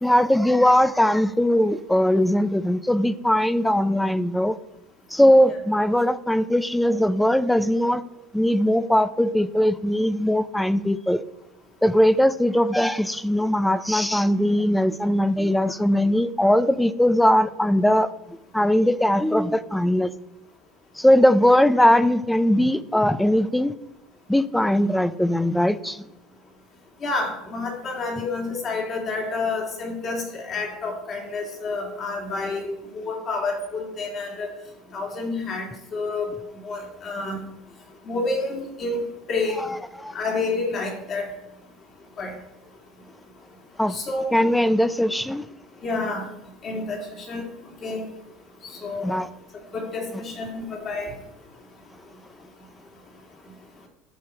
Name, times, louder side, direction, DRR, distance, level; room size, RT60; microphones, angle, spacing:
voice 1, 0.0-4.6 5.1-8.0 8.3-11.2 11.8-20.1 21.0-23.7 24.3-26.1 39.5-40.1 43.8-44.0 44.3-45.5 49.0-49.3, equal, 5° left, 15 dB, 0.4 m, -20 dB
voice 2, 27.0-34.5 34.9-36.3 36.6-37.4 38.1-39.6 40.1-41.3 42.2-42.3 43.9-44.3 45.8-46.3 46.6-47.0 47.3-47.5 47.8-48.0 48.8-49.1 49.7-51.1, left 3 dB, 35° left, 1 dB, 2.5 m, -29 dB
11.0 x 6.7 x 4.4 m, 0.92 s
supercardioid pair, 135°, 0 cm